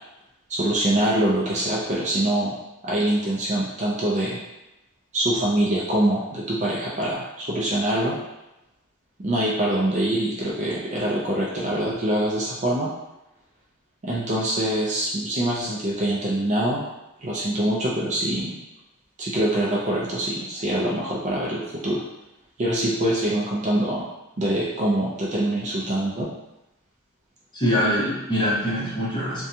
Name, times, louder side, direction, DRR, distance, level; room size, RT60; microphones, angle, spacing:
voice 1, 0.5-2.6 2.8-4.4 5.1-8.2 9.2-12.9 14.0-16.8 17.2-18.6 19.2-22.0 22.6-24.1 24.4-26.3, right 1 dB, 30° right, -5 dB, 0.4 m, -24 dB
voice 2, 27.5-29.4, equal, 20° left, -9 dB, 0.9 m, -23 dB
2.6 x 2.2 x 2.7 m, 0.92 s
head